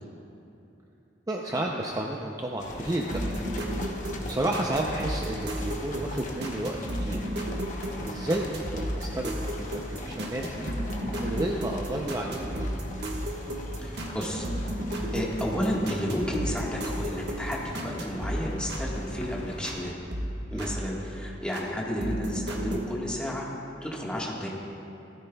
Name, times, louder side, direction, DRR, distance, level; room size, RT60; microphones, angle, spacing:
voice 1, 1.3-3.4 4.3-7.2 8.1-10.7 11.2-12.8 20.5-20.7, right 1 dB, 20° right, -1 dB, 0.5 m, -31 dB
sound 1, 2.6-19.9, left 1 dB, 45° left, 0.9 m, -40 dB
sound 2, 3.1-19.8 20.1-21.7 22.0-22.8, equal, 60° right, 1.3 m, -34 dB
voice 2, 13.8-14.7 15.1-19.9 20.5-23.4 23.8-24.5, equal, 5° left, -4 dB, 1.5 m, -32 dB
16.0 x 13.5 x 2.3 m, 2.8 s
head